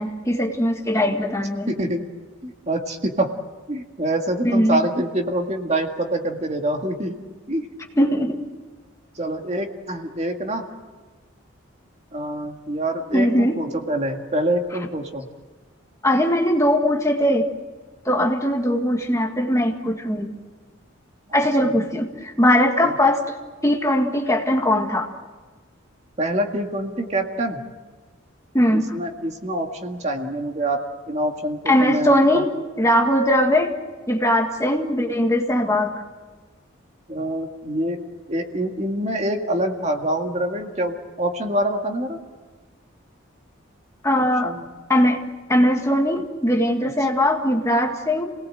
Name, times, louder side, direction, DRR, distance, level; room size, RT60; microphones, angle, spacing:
voice 1, 0.0-1.7 4.4-4.8 8.0-8.4 13.1-13.6 16.0-17.5 18.1-20.4 21.3-23.4 23.6-25.1 28.5-29.0 31.7-32.5 32.8-33.7 34.1-35.9 44.0-44.5 44.9-45.2 45.5-48.3, left 1 dB, 15° left, 2 dB, 1.8 m, -20 dB
voice 2, 1.7-2.0 2.4-3.3 3.7-7.2 7.5-7.7 9.2-10.6 12.1-15.3 21.6-21.7 22.8-22.9 26.2-27.6 28.7-30.8 31.1-32.4 37.1-38.0 38.3-42.2 44.1-44.7, right 1 dB, 35° right, 3 dB, 2.0 m, -25 dB
29.0 x 18.5 x 7.8 m, 1.4 s
head